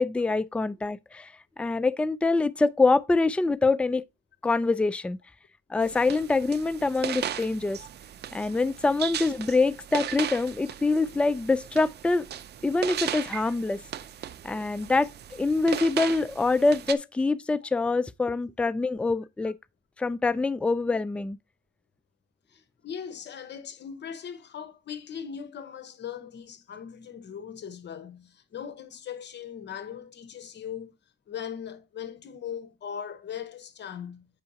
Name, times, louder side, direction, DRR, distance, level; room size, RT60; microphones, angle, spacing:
voice 1, 0.0-1.3 1.6-4.0 4.4-5.2 5.7-7.8 8.3-12.3 12.6-13.8 14.4-19.6 20.0-21.4, left 3 dB, 5° left, 0.3 m, -25 dB
sound 1, 5.8-16.9, right 10 dB, 55° right, 0.6 m, -37 dB
voice 2, 22.5-31.0 31.3-34.3, left 8 dB, 60° left, 1.1 m, -39 dB
8.7 x 5.5 x 2.8 m
cardioid pair, 90°, 20 cm